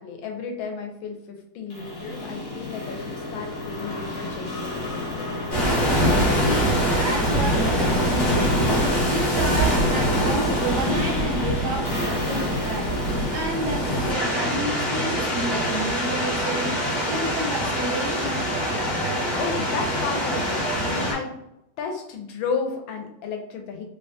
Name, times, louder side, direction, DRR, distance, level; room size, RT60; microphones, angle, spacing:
voice 1, 0.0-5.4 19.4-21.4 21.8-23.9, left 5 dB, 85° left, 3 dB, 1.4 m, -33 dB
sound 1, 1.7-14.6, left 2 dB, 50° left, 1.3 m, -33 dB
sound 2, 5.5-21.1, equal, 35° left, 0.8 m, -24 dB
voice 2, 6.4-8.8 9.1-13.0 13.3-16.8 17.1-18.5, right 1 dB, 75° right, -2 dB, 1.0 m, -31 dB
3.8 x 2.1 x 2.6 m, 0.82 s
omnidirectional pair, 2.1 m